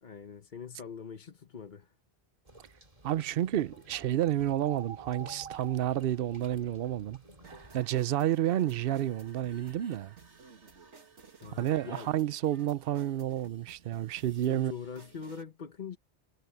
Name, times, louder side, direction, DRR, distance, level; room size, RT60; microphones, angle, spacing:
voice 1, 0.0-1.9 11.4-12.1 14.5-16.0, left 6 dB, 45° left, 1.1 m, -43 dB
sound 1, 2.5-7.8, right 6 dB, 30° right, 2.4 m, -49 dB
voice 2, 3.0-7.2 7.7-10.1 11.6-14.7, right 12 dB, 60° right, 0.8 m, -30 dB
sound 2, 7.4-15.4, right 4 dB, 85° right, 2.3 m, -55 dB
omnidirectional pair, 1.1 m